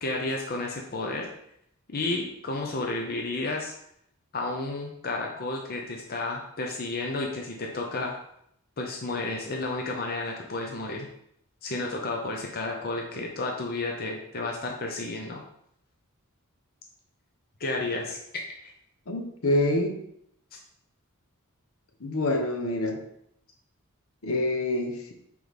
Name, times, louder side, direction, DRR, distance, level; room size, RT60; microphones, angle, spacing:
voice 1, 0.0-1.3 1.9-3.7 4.3-8.2 8.8-11.1 11.6-15.4 17.6-18.2 18.6-18.7, left 2 dB, 45° left, 0 dB, 0.7 m, -32 dB
voice 2, 19.1-19.9 22.0-23.0 24.2-25.1, left 1 dB, 70° left, 4 dB, 0.9 m, -26 dB
6.1 x 4.6 x 3.4 m, 0.73 s
head